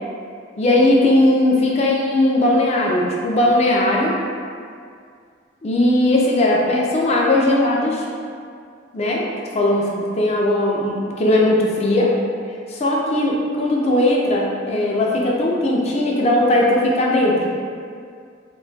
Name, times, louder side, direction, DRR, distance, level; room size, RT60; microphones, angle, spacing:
voice 1, 0.6-4.1 5.6-8.1 8.9-9.3 9.5-12.1 12.7-17.5, left 1 dB, 35° left, -2 dB, 0.4 m, -18 dB
2.3 x 2.2 x 3.8 m, 2.2 s
head